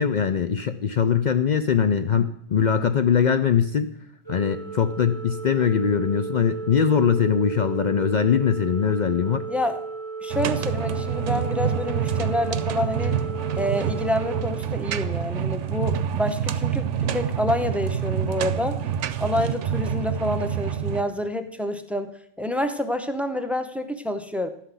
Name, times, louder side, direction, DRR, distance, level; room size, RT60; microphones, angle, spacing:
voice 1, 0.0-3.9 4.3-9.4, left 7 dB, 70° left, 10 dB, 0.4 m, -22 dB
Organ, 4.3-15.3, right 4 dB, 15° left, 0.9 m, -35 dB
voice 2, 9.5-9.8 10.2-13.2 13.6-18.8 19.2-24.5, left 1 dB, ahead, 8 dB, 0.4 m, -28 dB
sound 1, 10.3-21.0, right 8 dB, 70° right, 0.9 m, -27 dB
12.0 x 5.8 x 8.1 m, 0.71 s
omnidirectional pair, 1.4 m